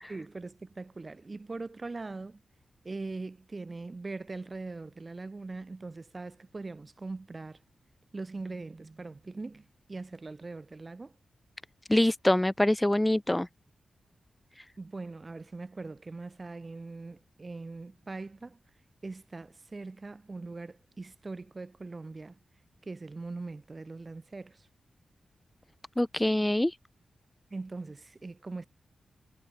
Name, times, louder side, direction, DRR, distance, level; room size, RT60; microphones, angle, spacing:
voice 1, 0.1-2.4 2.8-7.6 8.1-11.1 14.8-18.6 19.0-22.4 22.9-24.7 27.5-28.7, right 3 dB, 35° right, 3.7 m, -41 dB
voice 2, 11.9-13.5 26.0-26.7, left 1 dB, 10° left, 0.5 m, -25 dB
cardioid pair, 80°, 0 cm